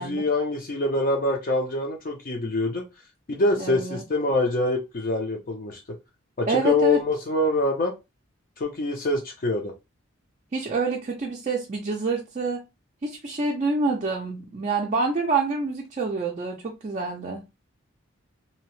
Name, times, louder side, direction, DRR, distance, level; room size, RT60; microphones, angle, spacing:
voice 1, 0.0-2.8 3.3-5.8 6.4-7.9 8.6-9.7, left 2 dB, 45° left, 0.5 m, -25 dB
voice 2, 3.6-4.0 6.5-7.0 10.5-12.6 13.0-17.4, right 3 dB, 35° right, 0.4 m, -27 dB
2.7 x 2.0 x 2.9 m
head